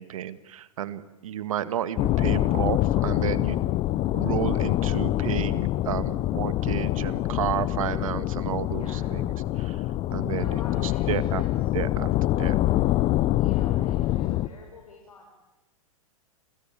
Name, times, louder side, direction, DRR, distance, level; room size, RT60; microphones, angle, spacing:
voice 1, 0.0-3.7 4.1-9.8 10.1-11.4 11.7-12.6, right 10 dB, 70° right, 14 dB, 1.9 m, -32 dB
sound 1, 2.0-14.5, left 15 dB, 35° left, 1.0 m, -25 dB
voice 2, 8.7-9.1 10.3-11.4 13.3-15.4, left 3 dB, 85° left, 1 dB, 6.7 m, -45 dB
30.0 x 22.0 x 8.9 m, 1.0 s
hypercardioid pair, 110°, 18 cm